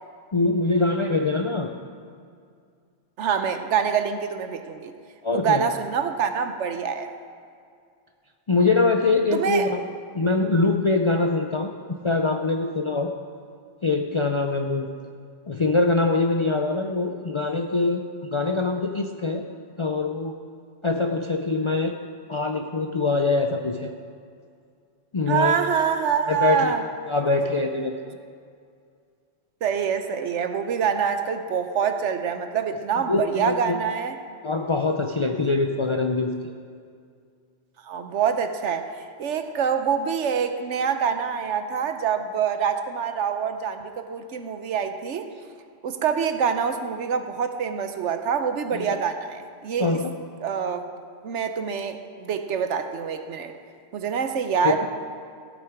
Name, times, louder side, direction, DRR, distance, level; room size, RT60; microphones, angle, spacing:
voice 1, 0.3-1.7 5.2-5.7 8.5-9.8 10.1-13.1 13.8-14.9 15.5-19.5 19.8-20.4 20.8-22.0 22.3-23.9 25.1-25.6 26.3-26.7 27.1-27.9 33.1-33.8 34.4-36.5 48.7-48.9 49.8-50.1 54.6-54.8, left 3 dB, 45° left, 3 dB, 0.4 m, -23 dB
voice 2, 3.2-4.9 5.3-7.1 9.3-9.7 25.3-26.8 29.6-34.2 37.8-38.9 39.2-45.3 45.8-49.9 50.4-50.8 51.2-53.5 53.9-54.9, right 7 dB, 80° right, 8 dB, 1.1 m, -25 dB
15.5 x 8.5 x 4.7 m, 2.3 s
omnidirectional pair, 1.2 m